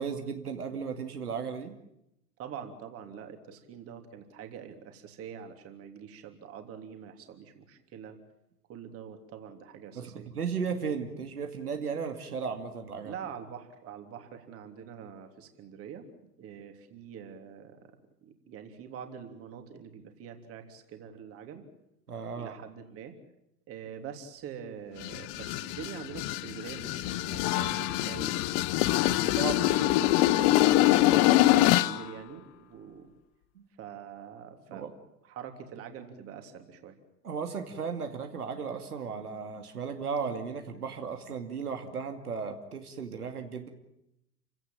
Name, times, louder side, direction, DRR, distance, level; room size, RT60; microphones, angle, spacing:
voice 1, 0.0-1.7 9.9-13.1 22.1-22.6 29.1-29.8 33.6-33.7 34.7-34.9 37.2-43.7, right 6 dB, 70° right, 5 dB, 2.5 m, -35 dB
voice 2, 2.4-8.2 8.7-10.3 13.0-16.1 16.4-17.8 18.2-21.6 22.3-23.1 23.7-28.4 29.0-33.1 33.8-34.8 35.2-37.0, right 7 dB, 30° right, 6 dB, 3.3 m, -44 dB
sound 1, 25.0-32.0, left 16 dB, 30° left, 0.9 m, -24 dB
29.0 x 17.0 x 9.0 m, 0.83 s
figure-of-eight pair, 100°, 47 cm